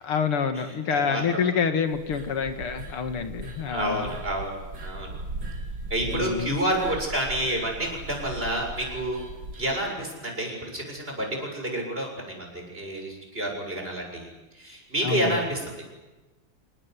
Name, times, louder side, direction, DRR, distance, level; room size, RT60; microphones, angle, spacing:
voice 1, 0.0-4.1 6.1-6.6 15.0-15.4, left 6 dB, 80° left, 8 dB, 2.7 m, -27 dB
voice 2, 0.9-1.4 3.7-5.1 5.9-9.2 9.6-15.8, right 1 dB, 25° right, 1 dB, 7.6 m, -29 dB
sound 1, 1.9-9.7, right 2 dB, 60° right, 4.2 m, -38 dB
28.0 x 19.0 x 9.6 m, 1.1 s
omnidirectional pair, 2.4 m